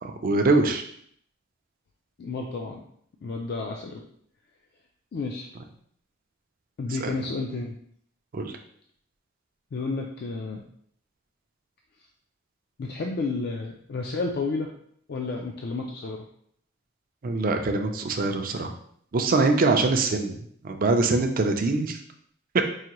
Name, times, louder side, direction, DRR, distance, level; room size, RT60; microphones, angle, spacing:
voice 1, 0.0-0.8 7.0-7.1 8.3-8.5 17.2-18.7 19.1-20.4 20.6-22.0, right 3 dB, 45° right, 5 dB, 0.4 m, -23 dB
voice 2, 2.2-2.8 3.2-4.0 5.1-5.5 6.8-7.8 9.7-10.6 12.8-14.7 15.1-16.2, left 3 dB, 55° left, 1 dB, 0.4 m, -31 dB
4.8 x 2.6 x 3.0 m, 0.65 s
head